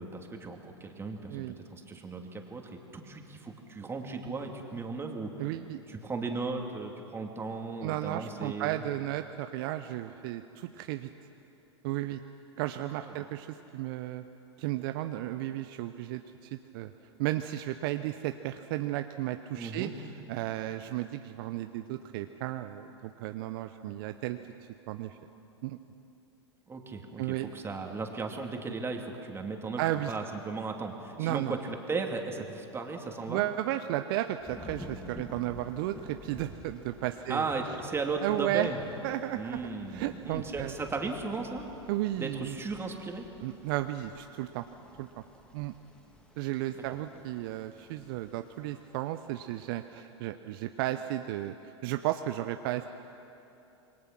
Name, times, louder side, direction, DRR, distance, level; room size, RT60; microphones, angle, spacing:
voice 1, 0.0-2.6 2.9-5.3 5.9-8.8 12.9-13.3 19.6-19.9 26.7-29.8 30.1-33.4 37.3-38.8 39.3-41.7 42.2-43.3 46.7-46.8, right 4 dB, 15° right, 3 dB, 2.7 m, -36 dB
voice 2, 5.4-5.8 7.8-11.1 11.8-12.2 12.6-14.2 14.6-16.9 17.2-19.9 20.3-24.4 24.9-25.2 25.6-25.8 27.2-27.5 29.8-30.1 31.2-31.5 33.3-37.5 38.2-38.7 39.0-39.6 39.9-40.7 41.9-42.6 43.4-44.7 45.0-45.1 45.5-45.7 46.4-51.5 51.8-52.9, right 14 dB, 50° right, 9 dB, 0.8 m, -34 dB
Thunder / Rain, 34.4-50.0, left 1 dB, 5° left, 2.6 m, -51 dB
27.0 x 22.0 x 6.1 m, 2.9 s
hypercardioid pair, 95°, 15 cm